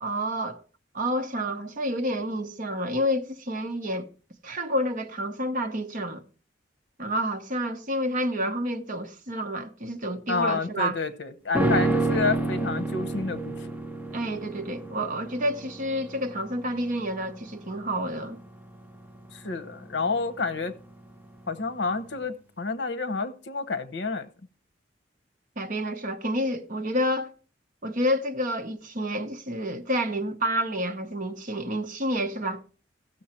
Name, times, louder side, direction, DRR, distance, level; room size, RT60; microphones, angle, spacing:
voice 1, 0.0-0.6 0.9-4.1 4.4-6.2 7.0-11.0 14.1-18.4 25.6-27.3 27.8-32.6, equal, 45° right, 1.0 m, -29 dB
voice 2, 10.3-13.6 19.3-20.7 21.5-24.3, left 4 dB, 65° left, 0.9 m, -29 dB
sound 1, 11.5-20.9 21.2-21.3, right 2 dB, 10° right, 0.8 m, -30 dB
15.5 x 6.5 x 4.4 m
head